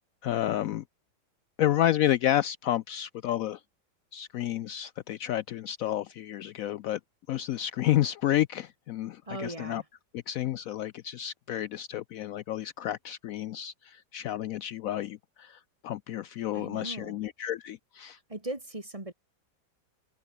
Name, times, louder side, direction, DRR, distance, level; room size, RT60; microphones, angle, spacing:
voice 1, 0.2-0.8 1.6-3.6 4.1-7.0 7.3-9.8 10.3-18.2, left 12 dB, 85° left, 0.7 m, -30 dB
voice 2, 9.3-9.8 16.5-17.2 18.3-19.1, right 1 dB, 20° right, 2.5 m, -38 dB
open air
omnidirectional pair, 2.0 m